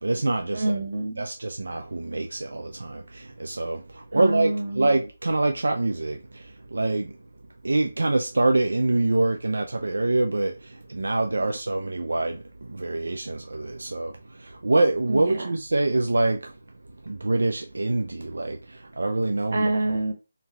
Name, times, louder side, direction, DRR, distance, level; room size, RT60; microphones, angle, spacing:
voice 1, 0.0-0.7 1.2-7.2 7.6-16.5 17.0-19.7, right 2 dB, 90° right, 0.6 m, -25 dB
voice 2, 0.5-1.3 4.1-5.0 11.4-11.5 15.1-15.4 19.5-20.1, right 2 dB, 55° right, 1.5 m, -27 dB
4.0 x 2.8 x 3.4 m
figure-of-eight pair, 170°, 0 cm